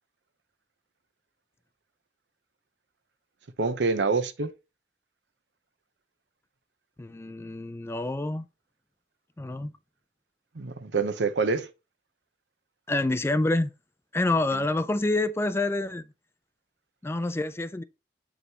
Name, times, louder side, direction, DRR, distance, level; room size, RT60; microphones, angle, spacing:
voice 1, 3.6-4.5 10.6-11.7 14.5-14.6, right 4 dB, 85° right, 0.7 m, -26 dB
voice 2, 7.0-8.5 9.4-9.7 12.9-13.7 14.1-16.1 17.0-17.8, left 2 dB, 15° left, 0.4 m, -27 dB
8.0 x 5.0 x 2.9 m
head